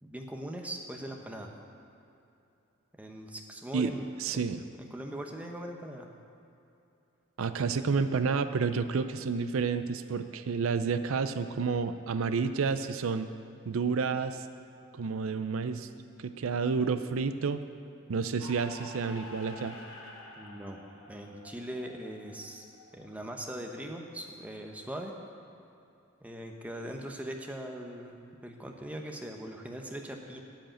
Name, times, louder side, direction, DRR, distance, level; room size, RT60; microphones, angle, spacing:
voice 1, 0.0-1.5 3.0-4.1 4.3-4.4 4.9-6.1 20.4-20.8 21.1-22.6 22.9-25.1 26.2-30.4, right 1 dB, 5° right, 2 dB, 0.8 m, -40 dB
voice 2, 4.2-4.6 7.4-13.3 13.7-14.4 14.9-15.9 16.2-17.6 18.1-19.8, right 5 dB, 80° right, 10 dB, 0.5 m, -30 dB
sound 1, 18.4-24.0, left 1 dB, 75° left, 1.9 m, -49 dB
13.0 x 4.9 x 8.9 m, 2.7 s
head